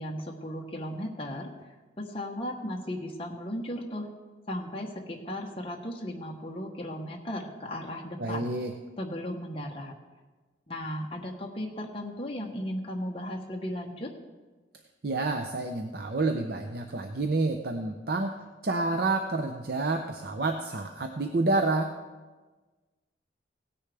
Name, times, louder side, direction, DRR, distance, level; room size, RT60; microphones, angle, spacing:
voice 1, 0.0-1.5 2.0-4.1 4.5-8.5 9.0-9.9 10.7-14.1, equal, 30° left, 0 dB, 1.1 m, -36 dB
voice 2, 8.2-8.7 15.0-21.9, right 2 dB, 55° right, 4 dB, 0.7 m, -29 dB
17.5 x 9.9 x 3.4 m, 1.3 s
head